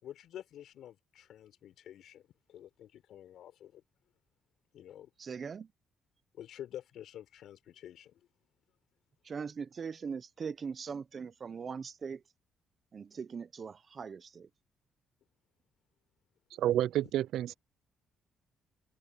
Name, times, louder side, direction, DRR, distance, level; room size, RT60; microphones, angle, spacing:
voice 1, 0.0-2.2 2.5-3.8 4.7-5.1 6.3-8.2 16.5-16.6, left 11 dB, 70° left, 4.7 m, -49 dB
voice 2, 5.2-5.7 9.2-12.2 12.9-14.5, right 6 dB, 45° right, 0.9 m, -40 dB
voice 3, 16.6-17.5, right 12 dB, 75° right, 0.5 m, -29 dB
cardioid pair, 85°, 0 cm